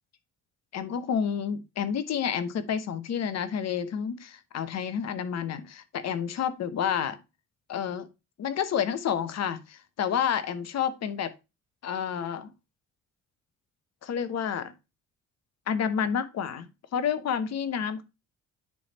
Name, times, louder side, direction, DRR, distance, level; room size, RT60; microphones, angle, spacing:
voice 1, 0.7-7.2 7.7-8.1 8.4-11.3 11.8-12.5 14.0-14.7 15.7-16.7 16.9-18.0, left 8 dB, 60° left, 12 dB, 1.0 m, -29 dB
9.4 x 3.5 x 4.2 m, 0.26 s
cardioid pair, 90°, 30 cm